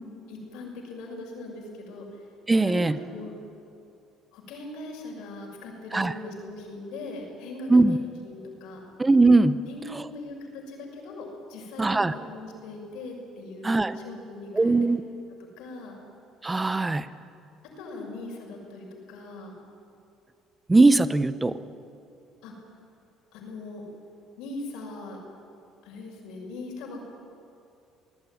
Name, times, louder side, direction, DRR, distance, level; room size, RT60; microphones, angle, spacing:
voice 1, 0.3-2.3 2.6-3.3 4.3-8.9 9.6-14.8 15.6-16.0 17.8-19.5 21.4-21.6 22.4-22.5 23.3-23.8 24.4-25.2 25.8-27.0, left 2 dB, 80° left, 0 dB, 6.6 m, -40 dB
voice 2, 2.5-2.9 5.9-6.1 7.7-8.0 9.0-9.6 11.8-12.1 13.6-14.0 14.6-15.0 16.4-17.1 20.7-21.5, right 3 dB, 15° right, 12 dB, 0.9 m, -20 dB
25.5 x 19.5 x 9.6 m, 2.5 s
cardioid pair, 135°, 0 cm